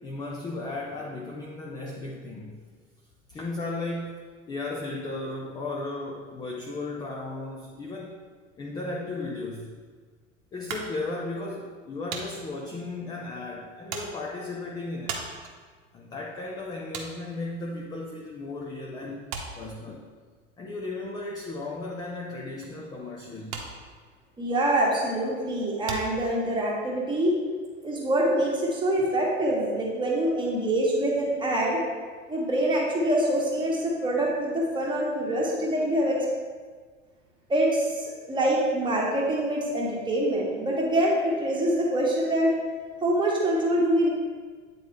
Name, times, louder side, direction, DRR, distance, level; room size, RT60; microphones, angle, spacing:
voice 1, 0.0-2.6 3.3-8.2 8.6-9.8 10.5-15.3 15.9-19.3 19.6-20.0 20.6-23.6, left 2 dB, 10° left, -1 dB, 0.4 m, -35 dB
sound 1, 10.7-18.5 18.8-26.9, right 4 dB, 45° right, 1.0 m, -41 dB
voice 2, 24.4-27.4 27.8-31.8 32.3-36.2 37.5-42.5 43.0-44.1, right 1 dB, 10° right, -4 dB, 1.4 m, -25 dB
8.9 x 4.1 x 3.2 m, 1.5 s
figure-of-eight pair, 85°, 39 cm